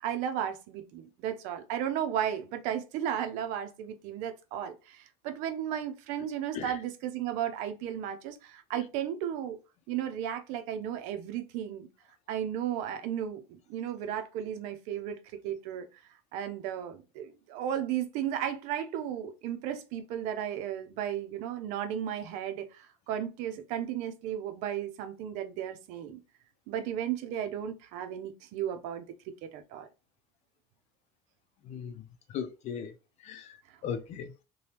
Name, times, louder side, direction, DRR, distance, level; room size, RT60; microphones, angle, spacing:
voice 1, 0.0-9.6 9.9-11.9 12.3-15.9 16.3-26.2 26.7-29.9, right 10 dB, 80° right, 0.6 m, -34 dB
voice 2, 31.6-32.0 32.3-32.9 33.2-33.6 33.8-34.3, left 7 dB, 60° left, 0.6 m, -37 dB
2.8 x 2.3 x 3.3 m
supercardioid pair, 85°, 13 cm